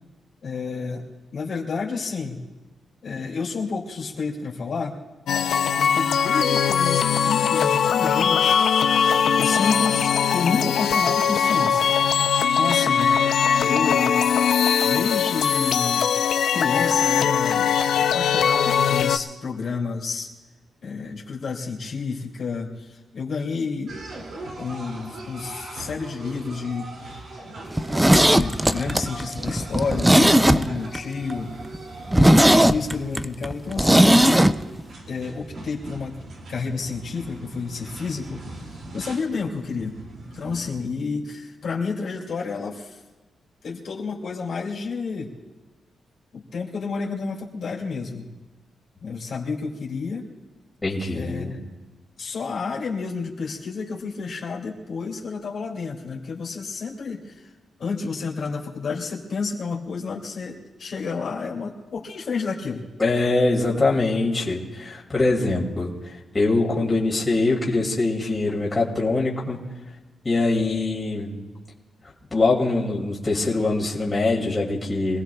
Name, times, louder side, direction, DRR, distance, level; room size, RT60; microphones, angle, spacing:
voice 1, 0.4-2.5 3.0-5.0 5.8-8.6 9.3-11.9 12.6-13.1 13.6-14.1 14.8-16.0 16.5-17.7 18.0-20.3 20.8-23.9 24.5-27.3 28.1-31.5 32.6-34.6 35.1-36.2 36.5-40.0 40.3-43.0 43.6-45.3 46.3-48.3 49.0-50.3 51.1-51.6 52.2-57.5 57.8-62.9, left 4 dB, 55° left, -3 dB, 2.5 m, -30 dB
sound 1, 5.3-19.2, left 7 dB, 75° left, 0.5 m, -21 dB
sound 2, 23.9-41.0, right 2 dB, 60° right, 2.5 m, -40 dB
Zipper (clothing), 27.7-31.0 31.3-31.4 31.7-31.8 32.1-34.5 34.8-34.9, right 1 dB, 5° right, 0.4 m, -17 dB
voice 2, 50.8-51.5 63.0-69.6 70.2-71.3 72.3-75.2, left 2 dB, 20° left, -4 dB, 2.5 m, -23 dB
25.5 x 18.5 x 2.3 m, 1.2 s
wide cardioid pair, 160°, 0 cm